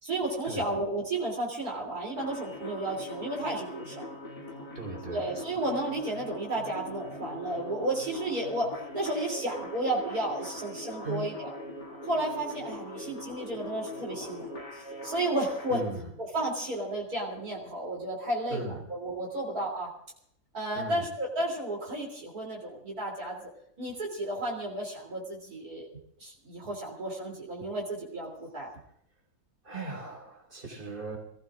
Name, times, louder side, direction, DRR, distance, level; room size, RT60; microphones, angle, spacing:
voice 1, 0.0-4.1 5.1-11.5 12.0-14.6 15.0-15.8 16.2-19.9 20.5-23.4 23.8-25.9 26.2-28.7, right 1 dB, 65° right, -2 dB, 3.6 m, -32 dB
sound 1, 2.2-15.9, left 1 dB, 85° left, 3.3 m, -42 dB
voice 2, 4.7-5.2 11.0-11.3 15.7-16.1 18.5-18.8 20.7-21.0 29.6-31.2, right 2 dB, 30° right, -1 dB, 4.1 m, -38 dB
27.0 x 15.5 x 2.5 m, 0.70 s
omnidirectional pair, 1.7 m